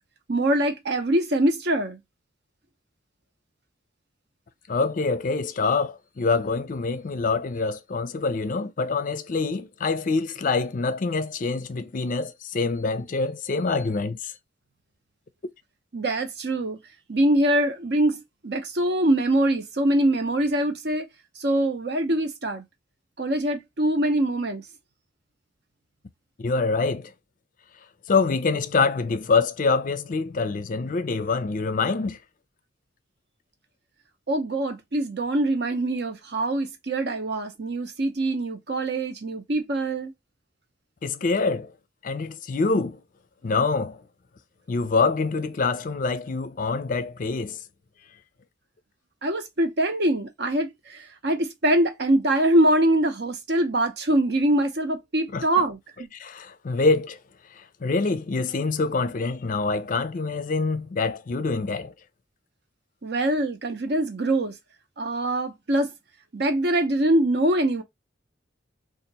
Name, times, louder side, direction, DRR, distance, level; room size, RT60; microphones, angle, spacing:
voice 1, 0.3-2.0 15.9-16.8 17.1-21.0 21.4-22.6 23.2-24.6 34.3-40.1 49.2-55.8 63.0-64.5 65.0-65.9 66.3-67.8, right 1 dB, 60° right, 0.8 m, -23 dB
voice 2, 4.7-14.3 15.4-15.5 26.4-27.1 28.1-32.2 41.0-41.7 42.0-43.0 43.4-44.0 44.7-47.6 55.3-55.6 56.2-57.2 57.8-61.9, left 4 dB, 45° left, 0.4 m, -25 dB
2.8 x 2.5 x 4.0 m
head